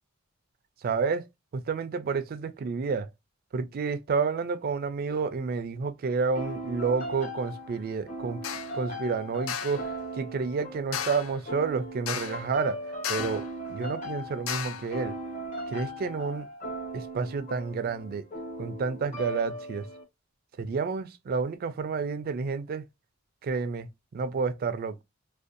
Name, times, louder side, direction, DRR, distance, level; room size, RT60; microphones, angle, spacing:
voice 1, 0.8-1.3 1.5-3.1 3.5-15.1 15.7-16.5 16.9-18.2 18.6-19.9 20.6-22.9 23.4-25.0, right 5 dB, 45° right, 0.3 m, -30 dB
sound 1, 6.3-20.0, right 1 dB, 35° left, 0.9 m, -38 dB
sound 2, 8.4-8.8 9.5-9.9 10.9-11.4 12.1-12.5 13.0-13.5 14.5-14.9, left 9 dB, 75° left, 0.4 m, -34 dB
2.6 x 2.2 x 2.4 m
head